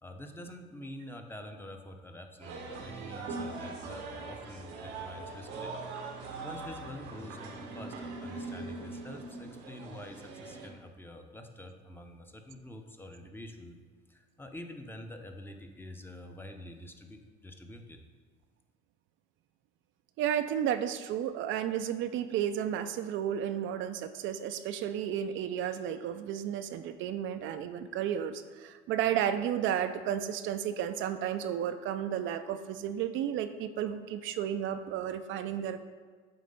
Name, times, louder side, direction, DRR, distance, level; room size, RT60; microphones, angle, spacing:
voice 1, 0.0-5.7 6.4-13.8 14.1-18.0, left 1 dB, 10° left, 4 dB, 0.7 m, -47 dB
sound 1, 2.4-10.7, right 3 dB, 90° right, 1.0 m, -41 dB
voice 2, 20.2-35.8, right 10 dB, 70° right, 9 dB, 0.4 m, -32 dB
7.6 x 3.2 x 5.3 m, 1.5 s
supercardioid pair, 90°, 21 cm